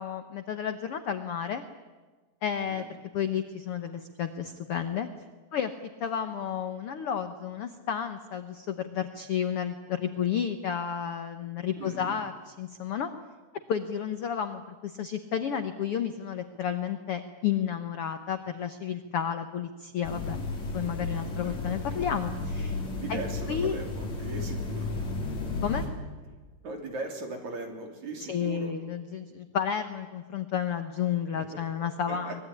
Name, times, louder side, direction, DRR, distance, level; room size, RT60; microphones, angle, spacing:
voice 1, 0.0-1.6 2.4-2.8 3.1-5.1 5.5-5.7 6.0-12.3 12.6-13.1 13.7-20.4 20.7-22.8 23.1-23.2 23.5-23.8 25.6-25.9 28.3-32.3, left 8 dB, 75° left, 8 dB, 1.3 m, -31 dB
voice 2, 11.8-12.2 21.4-21.6 23.0-25.1 26.6-28.7 31.3-31.6 32.1-32.4, right 3 dB, 55° right, 3 dB, 4.5 m, -39 dB
sound 1, 20.0-25.9, left 3 dB, 50° left, 5.3 m, -33 dB
24.0 x 21.0 x 9.9 m, 1.3 s
omnidirectional pair, 4.2 m